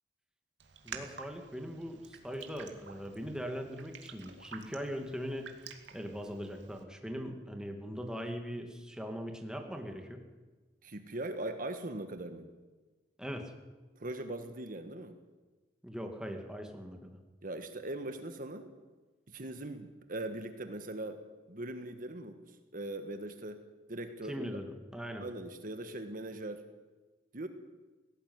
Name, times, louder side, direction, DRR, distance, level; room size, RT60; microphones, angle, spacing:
Raindrop, 0.6-6.8, right 6 dB, 80° right, 2.4 m, -50 dB
voice 1, 0.8-5.5 5.9-10.2 13.2-13.5 15.8-17.2 24.3-25.3, equal, 5° right, 4 dB, 2.2 m, -40 dB
voice 2, 10.8-12.5 14.0-15.2 17.4-18.7 19.3-21.2 21.5-23.6 23.9-24.5 25.2-26.6 27.3-27.5, right 1 dB, 50° right, 8 dB, 1.5 m, -40 dB
18.0 x 17.5 x 9.6 m, 1.3 s
head